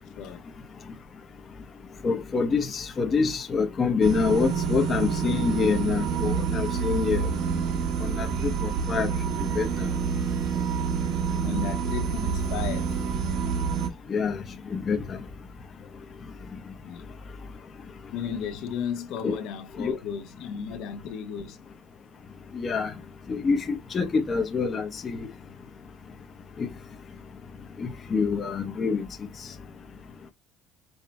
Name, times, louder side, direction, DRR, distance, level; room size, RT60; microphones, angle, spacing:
voice 1, 2.0-7.3 8.0-9.1 9.4-9.9 14.1-14.4 14.7-15.2 19.2-19.4 19.8-19.9 22.5-22.9 23.3-25.3 26.6-26.7 27.8-29.1, left 5 dB, 30° left, 0.7 m, -26 dB
sound 1, 4.0-13.9, right 6 dB, 75° right, 1.2 m, -27 dB
voice 2, 11.4-13.0 16.8-17.1 18.1-21.6, left 7 dB, 70° left, 1.0 m, -34 dB
5.7 x 2.2 x 4.2 m
cardioid pair, 150°, 0 cm